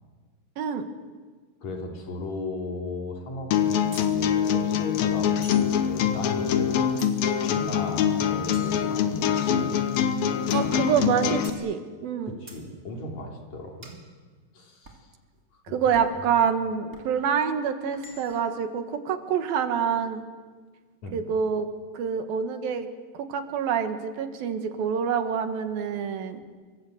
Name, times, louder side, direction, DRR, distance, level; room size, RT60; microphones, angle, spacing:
voice 1, 0.6-0.9 10.5-12.3 15.7-20.2 21.1-21.7 21.9-22.9 23.1-26.4, right 7 dB, 85° right, 7 dB, 3.4 m, -26 dB
voice 2, 1.6-6.9 7.5-11.2 12.2-13.9 14.5-15.1 15.5-16.1 21.0-21.2, left 2 dB, 55° left, 1 dB, 4.3 m, -37 dB
sound 1, 3.5-11.5, left 8 dB, 85° left, 3.2 m, -24 dB
sound 2, 3.9-4.2 5.4-5.8 7.0-7.4 8.5-9.4 10.5-10.8 11.4-11.7 12.5-12.7 13.8-14.1 14.8-15.1 15.9-16.3 16.9-17.1 17.9-18.5, right 2 dB, 25° right, 3.1 m, -48 dB
27.5 x 24.0 x 7.9 m, 1.5 s
omnidirectional pair, 4.1 m